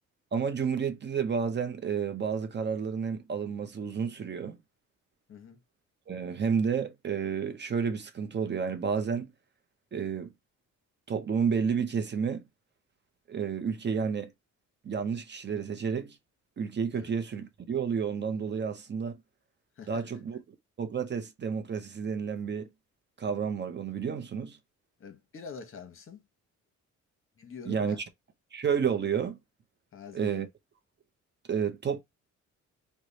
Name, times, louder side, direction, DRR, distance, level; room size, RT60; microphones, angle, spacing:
voice 1, 0.3-4.6 6.1-9.3 9.9-10.3 11.1-12.4 13.3-14.3 14.8-16.2 16.6-19.2 19.9-20.4 20.8-22.7 23.2-24.6 27.7-28.0 28.5-29.4 30.1-30.5 31.5-32.0, right 6 dB, 35° right, 0.7 m, -30 dB
voice 2, 5.3-5.6 16.9-17.1 19.8-20.0 25.0-26.2 27.4-28.0 29.9-30.4, left 6 dB, 45° left, 1.0 m, -45 dB
3.1 x 2.2 x 3.9 m
cardioid pair, 90°, 30 cm